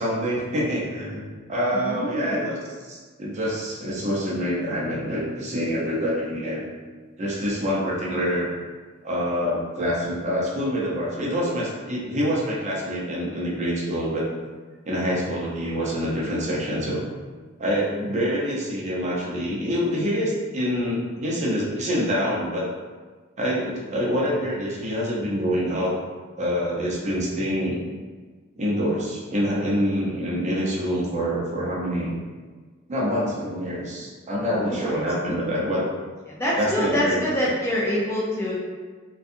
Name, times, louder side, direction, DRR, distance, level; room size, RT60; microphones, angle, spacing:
voice 1, 0.0-2.6 2.9-6.6 7.2-8.5 9.0-14.3 14.9-17.0 17.6-22.7 23.4-25.9 26.4-27.9 28.6-32.2 32.9-35.8 36.6-37.2, equal, 35° right, -5 dB, 0.6 m, -26 dB
voice 2, 1.7-2.5 34.5-35.1 36.3-38.5, equal, 10° left, -6 dB, 0.4 m, -26 dB
2.6 x 2.3 x 2.5 m, 1.4 s
head